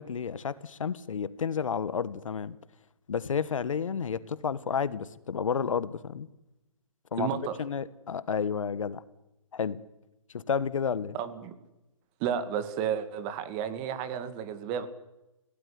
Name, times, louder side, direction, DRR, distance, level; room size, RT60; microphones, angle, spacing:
voice 1, 0.0-2.5 3.1-6.3 7.1-7.3 7.6-9.0 9.5-9.8 10.3-11.2, left 6 dB, 70° left, 17 dB, 1.4 m, -31 dB
voice 2, 7.2-7.5 11.1-11.5 12.2-14.9, right 8 dB, 25° right, 11 dB, 2.3 m, -32 dB
23.0 x 17.0 x 10.0 m, 0.95 s
hypercardioid pair, 145°, 17 cm